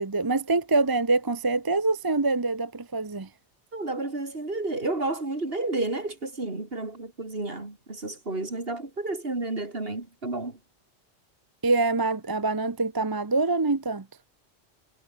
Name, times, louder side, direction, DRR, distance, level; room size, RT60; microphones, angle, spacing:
voice 1, 0.0-3.3 11.6-14.1, right 3 dB, 20° right, 0.8 m, -25 dB
voice 2, 3.7-10.6, right 2 dB, 55° right, 3.7 m, -31 dB
omnidirectional pair, 1.2 m